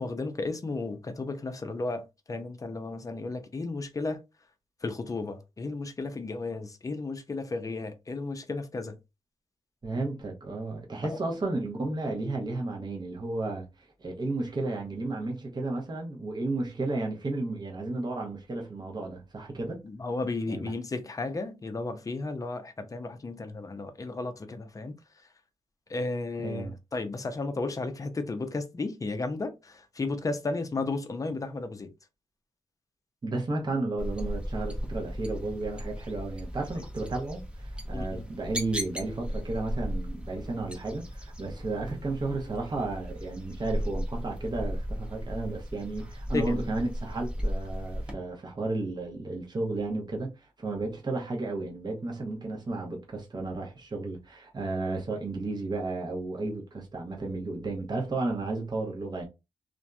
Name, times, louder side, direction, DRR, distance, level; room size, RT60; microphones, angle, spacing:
voice 1, 0.0-4.2 4.8-9.0 11.1-11.2 19.8-24.9 25.9-31.9 37.9-38.3 46.3-46.6, left 3 dB, 30° left, 0.5 m, -34 dB
voice 2, 9.8-13.7 14.0-19.8 20.5-20.7 26.4-26.7 33.2-59.2, right 2 dB, 35° right, 0.9 m, -33 dB
sound 1, 34.0-48.1, equal, 10° right, 0.7 m, -36 dB
2.8 x 2.5 x 2.2 m
wide cardioid pair, 115°, 12 cm